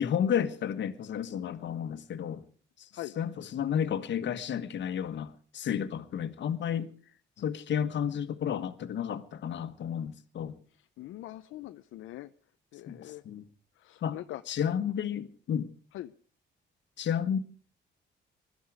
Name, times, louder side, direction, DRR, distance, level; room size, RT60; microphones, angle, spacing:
voice 1, 0.0-2.4 2.8-2.9 3.2-6.9 7.4-10.5 12.9-13.5 14.0-14.2 14.5-15.7 17.0-17.4, left 8 dB, 65° left, 1.5 m, -32 dB
voice 2, 11.0-12.3 12.7-13.2 13.8-14.4 14.8-14.9 15.9-16.1, left 15 dB, 85° left, 0.7 m, -42 dB
20.5 x 13.5 x 4.9 m
cardioid pair, 90°, 20 cm